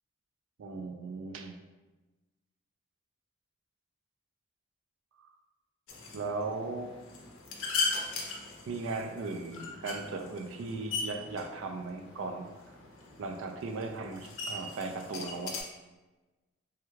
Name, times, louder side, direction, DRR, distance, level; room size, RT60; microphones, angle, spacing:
voice 1, 0.6-1.6 5.2-5.3 6.1-6.9 8.7-12.5 13.2-15.6, right 3 dB, 60° right, 5 dB, 0.3 m, -37 dB
sound 1, 5.9-15.6, left 3 dB, 65° left, 0.5 m, -39 dB
3.3 x 2.2 x 3.1 m, 1.2 s
head